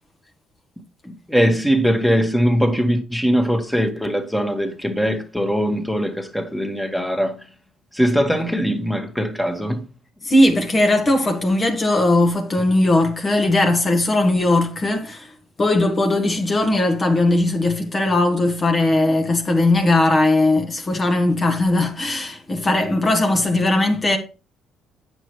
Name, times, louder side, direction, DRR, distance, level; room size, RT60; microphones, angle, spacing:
voice 1, 1.0-7.5 7.9-9.8 22.8-23.1, equal, 5° left, 1.6 m, -21 dB
voice 2, 10.2-15.3 15.6-24.2, left 2 dB, 35° left, 1.3 m, -18 dB
8.8 x 6.3 x 3.1 m
hypercardioid pair, 60°, 0 cm